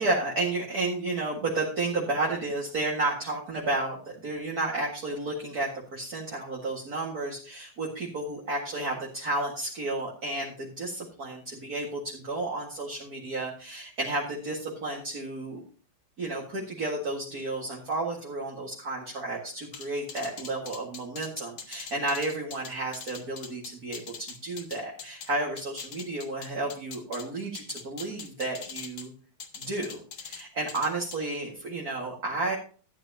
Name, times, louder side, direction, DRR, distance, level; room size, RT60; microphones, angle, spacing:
voice 1, 0.0-15.6 16.2-29.1 29.6-32.6, right 2 dB, 45° right, -3 dB, 2.4 m, -32 dB
sound 1, 19.7-25.3 25.6-27.2 27.5-29.1 29.4-30.4 30.7-31.2, left 6 dB, 65° left, 2.1 m, -42 dB
14.0 x 9.5 x 2.9 m, 0.39 s
omnidirectional pair, 2.3 m